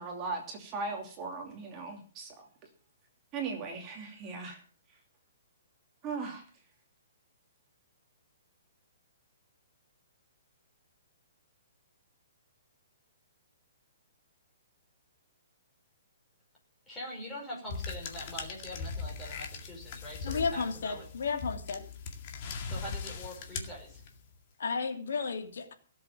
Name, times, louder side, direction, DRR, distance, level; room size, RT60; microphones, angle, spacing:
voice 1, 0.0-2.5 3.3-4.6 6.0-6.4, right 4 dB, 20° right, 1 dB, 2.9 m, -38 dB
voice 2, 16.9-21.0 22.6-24.0, equal, 10° left, -3 dB, 5.4 m, -43 dB
sound 1, 17.7-24.3, left 4 dB, 30° left, 2.1 m, -40 dB
voice 3, 20.2-21.8 24.6-25.7, left 5 dB, 70° left, 5 dB, 2.7 m, -33 dB
17.0 x 7.7 x 7.2 m, 0.40 s
hypercardioid pair, 175°, 0 cm